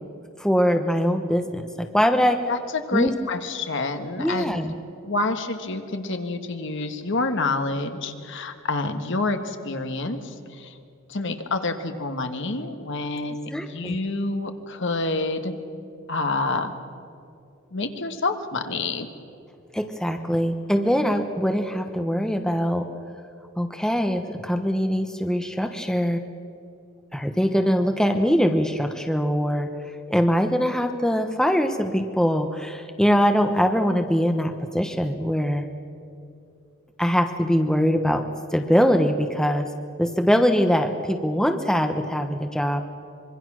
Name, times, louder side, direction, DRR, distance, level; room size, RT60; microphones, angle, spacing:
voice 1, 0.4-2.5 2.9-3.1 4.2-4.7 13.5-14.0 19.7-22.9 23.6-26.2 27.1-29.7 30.1-35.7 37.0-39.7 40.0-42.8, equal, 5° left, 6 dB, 0.9 m, -22 dB
voice 2, 2.5-4.6 5.0-10.7 11.1-15.5 16.1-16.7 17.7-19.1, left 3 dB, 60° left, 7 dB, 1.5 m, -28 dB
25.0 x 22.5 x 6.2 m, 2.5 s
head